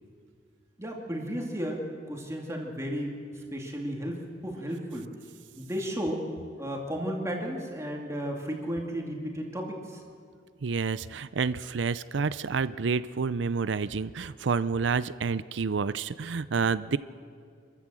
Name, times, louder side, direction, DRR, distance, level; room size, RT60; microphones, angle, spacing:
voice 1, 0.8-3.2 3.5-5.1 5.6-6.3 6.6-10.0, equal, 15° right, 0 dB, 2.4 m, -34 dB
voice 2, 10.6-17.0, right 5 dB, 70° right, 15 dB, 0.5 m, -29 dB
26.0 x 14.5 x 7.7 m, 2.2 s
head